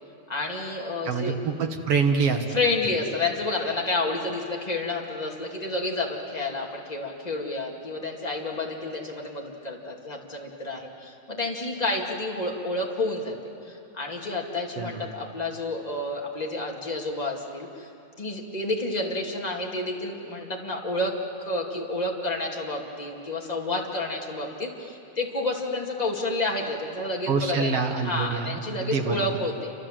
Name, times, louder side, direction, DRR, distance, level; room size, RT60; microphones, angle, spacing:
voice 1, 0.3-1.4 2.5-13.4 13.6-17.9 18.2-29.7, left 2 dB, 15° left, -1 dB, 2.1 m, -30 dB
voice 2, 1.1-2.5 14.8-15.1 27.3-29.3, right 5 dB, 55° right, 5 dB, 2.1 m, -26 dB
28.5 x 26.0 x 7.6 m, 2.7 s
omnidirectional pair, 3.5 m